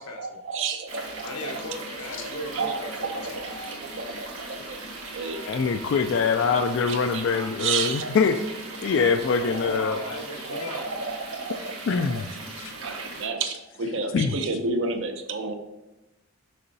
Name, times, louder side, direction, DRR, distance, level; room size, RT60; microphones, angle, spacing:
voice 1, 0.2-1.6 2.2-3.5 3.8-4.8 5.1-5.4 6.9-8.2 9.6-9.8 10.4-12.2 12.8-15.5, right 4 dB, 55° right, 6 dB, 0.6 m, -31 dB
sound 1, 0.9-13.3, right 2 dB, 75° right, 1.8 m, -39 dB
voice 2, 1.2-3.4 9.4-10.9, left 1 dB, 90° left, 2 dB, 1.0 m, -36 dB
voice 3, 5.5-8.4 8.8-10.0 11.9-12.2 12.6-12.7 14.1-14.4, left 5 dB, 55° left, 6 dB, 0.3 m, -24 dB
6.6 x 5.4 x 2.7 m, 1.0 s
head